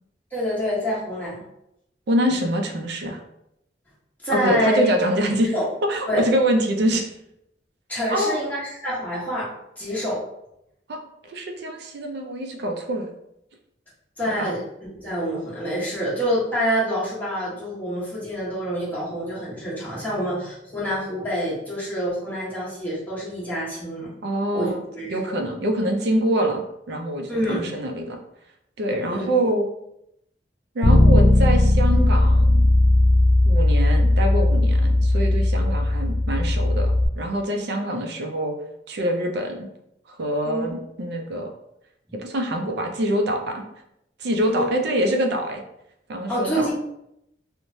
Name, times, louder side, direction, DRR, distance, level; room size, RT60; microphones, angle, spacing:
voice 1, 0.3-1.4 4.2-4.8 5.5-5.7 6.1-6.2 7.9-9.5 9.8-10.2 14.2-14.6 14.9-24.1 24.5-25.2 27.3-27.6 29.1-29.3 40.4-40.6 44.4-44.7 46.3-46.7, equal, 10° left, -8 dB, 1.1 m, -26 dB
voice 2, 2.1-3.2 4.3-5.5 5.8-7.1 8.1-8.4 10.9-13.1 14.4-14.5 24.2-24.8 25.1-28.2 28.8-29.7 30.7-32.7 33.4-38.5 38.9-39.6 40.1-41.5 42.1-43.6 44.2-45.6 46.1-46.7, right 1 dB, 65° right, 3 dB, 0.4 m, -25 dB
Bass guitar, 30.8-37.1, left 1 dB, 70° left, 0.4 m, -17 dB
3.0 x 2.1 x 2.6 m, 0.81 s
head